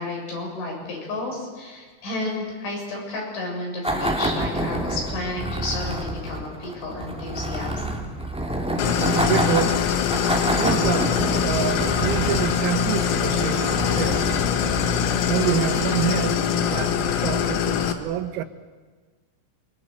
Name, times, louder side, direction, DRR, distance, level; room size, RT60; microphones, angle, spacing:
voice 1, 0.0-7.8 13.3-13.4, left 2 dB, 65° left, 9.5 m, -32 dB
sound 1, 3.8-16.0, right 1 dB, 5° right, 0.7 m, -28 dB
Idling, 8.8-17.9, left 8 dB, 80° left, 4.3 m, -23 dB
voice 2, 8.9-9.8 10.5-14.2 15.2-18.4, right 12 dB, 85° right, 3.8 m, -27 dB
28.5 x 25.0 x 8.0 m
omnidirectional pair, 5.9 m